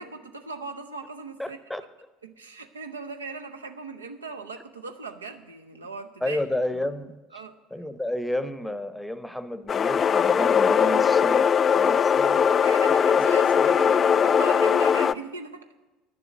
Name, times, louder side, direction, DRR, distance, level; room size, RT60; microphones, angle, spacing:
voice 1, 0.0-1.6 2.2-6.4 7.3-7.6 12.3-15.7, right 4 dB, 85° right, 7 dB, 0.7 m, -39 dB
voice 2, 1.4-1.8 6.2-7.2 7.7-11.5 11.7-12.4 13.6-13.7, left 1 dB, 5° left, 13 dB, 0.8 m, -31 dB
sound 1, 9.7-15.1, left 7 dB, 35° left, 0.3 m, -20 dB
9.9 x 7.0 x 9.2 m, 1.1 s
figure-of-eight pair, 65°, 0 cm